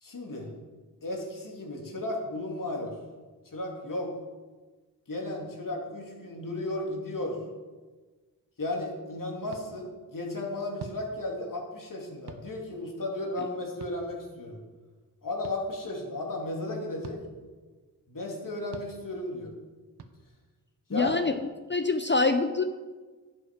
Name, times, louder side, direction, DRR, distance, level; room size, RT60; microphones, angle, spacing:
voice 1, 0.0-0.5 1.0-3.0 3.5-4.1 5.1-7.4 8.6-14.6 15.2-17.2 18.1-19.5 20.9-21.2, left 2 dB, 50° left, 0 dB, 2.6 m, -34 dB
sound 1, 9.5-9.6 10.8-11.0 12.3-12.4 13.8-14.0 15.4-15.6 17.0-17.2 18.7-18.9 20.0-20.1 21.1-21.2, right 5 dB, 70° right, 1.0 m, -43 dB
voice 2, 20.9-21.3 21.7-22.6, left 3 dB, 25° left, 8 dB, 0.6 m, -25 dB
11.0 x 7.8 x 5.1 m, 1.3 s
wide cardioid pair, 80°, 42 cm